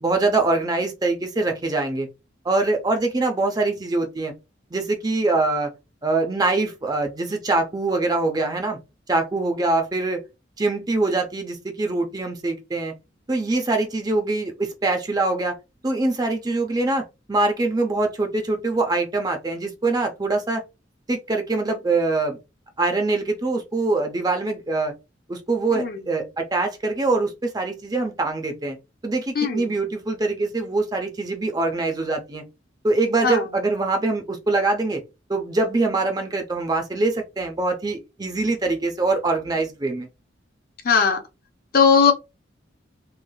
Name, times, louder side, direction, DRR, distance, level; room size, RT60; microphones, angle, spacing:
voice 1, 0.0-2.1 2.4-4.3 4.7-5.7 6.0-8.8 9.1-10.2 10.6-12.9 13.3-15.6 15.8-20.6 21.1-22.4 22.8-24.9 25.3-28.8 29.0-32.4 32.8-35.0 35.3-40.1, right 3 dB, 20° right, 0.5 m, -23 dB
voice 2, 40.8-41.2 41.7-42.1, left 6 dB, 50° left, 0.6 m, -17 dB
3.1 x 2.4 x 2.3 m
head